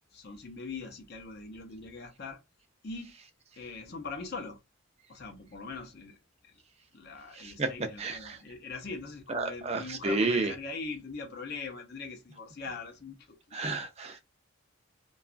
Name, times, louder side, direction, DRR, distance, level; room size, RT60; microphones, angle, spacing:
voice 1, 0.1-2.4 2.8-3.1 3.6-4.6 5.1-6.2 6.4-6.5 6.9-13.8, left 4 dB, 55° left, 0.6 m, -41 dB
voice 2, 7.3-7.7 8.0-8.4 9.3-10.5 13.5-14.2, right 3 dB, 30° right, 0.4 m, -31 dB
2.9 x 2.3 x 2.4 m
head